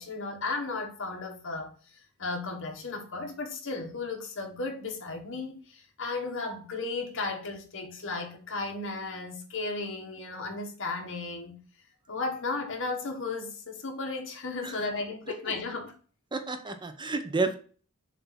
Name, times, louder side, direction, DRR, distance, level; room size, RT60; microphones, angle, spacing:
voice 1, 0.0-11.6 12.1-15.9, left 3 dB, 65° left, 1.7 m, -35 dB
voice 2, 16.3-17.6, right 3 dB, 20° right, 0.7 m, -30 dB
7.0 x 2.8 x 5.9 m
head